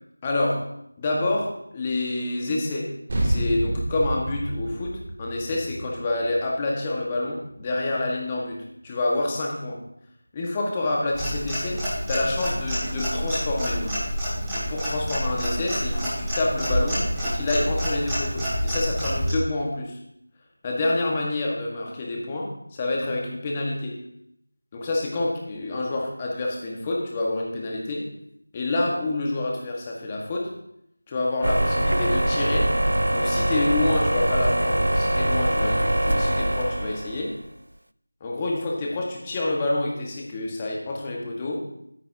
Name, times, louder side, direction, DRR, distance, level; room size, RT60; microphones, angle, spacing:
voice 1, 0.2-0.7 1.0-2.9 3.2-9.8 10.3-14.1 14.5-20.0 20.6-24.0 24.7-28.1 28.5-30.5 31.1-32.7 33.1-37.4 38.2-41.7, left 2 dB, 20° left, -2 dB, 1.6 m, -28 dB
sound 1, 3.1-7.9, right 1 dB, 35° right, 2.4 m, -29 dB
Clock, 11.1-19.3, equal, 5° right, 3.3 m, -28 dB
sound 2, 31.4-37.4, right 1 dB, 80° right, 0.4 m, -23 dB
13.5 x 9.8 x 2.9 m, 0.75 s
figure-of-eight pair, 170°, 0 cm